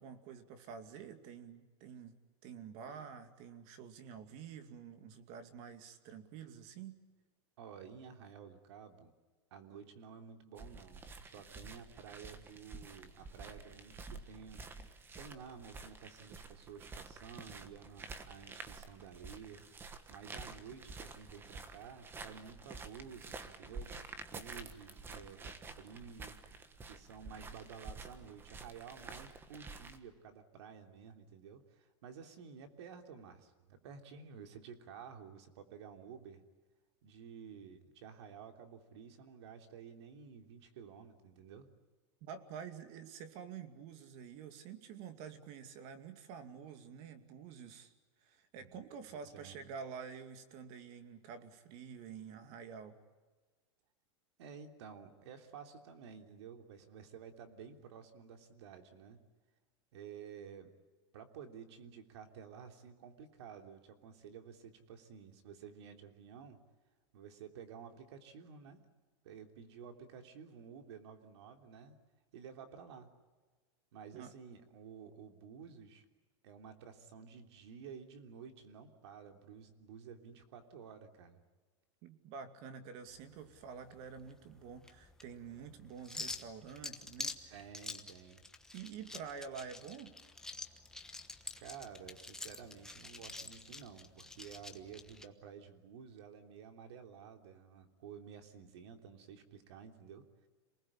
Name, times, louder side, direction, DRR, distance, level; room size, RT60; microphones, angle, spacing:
voice 1, 0.0-2.1 2.4-7.0 42.2-47.9 48.2-53.0 74.1-74.4 82.0-87.6 88.7-90.1, right 7 dB, 45° right, 9 dB, 2.5 m, -48 dB
voice 2, 7.6-9.1 9.5-14.7 15.2-19.6 20.1-24.0 24.2-26.4 26.9-36.4 37.0-41.7 48.6-48.8 49.1-49.6 54.4-59.2 59.9-60.7 61.1-66.6 67.1-68.8 69.2-72.0 72.3-73.1 73.9-76.0 76.4-81.4 87.5-88.4 91.6-100.3, right 7 dB, 70° right, 5 dB, 3.2 m, -52 dB
sound 1, 10.6-30.0, right 4 dB, 15° right, 1.4 m, -50 dB
sound 2, 83.1-95.3, left 2 dB, 5° left, 1.2 m, -48 dB
27.5 x 20.0 x 8.7 m, 1.4 s
supercardioid pair, 155°, 15 cm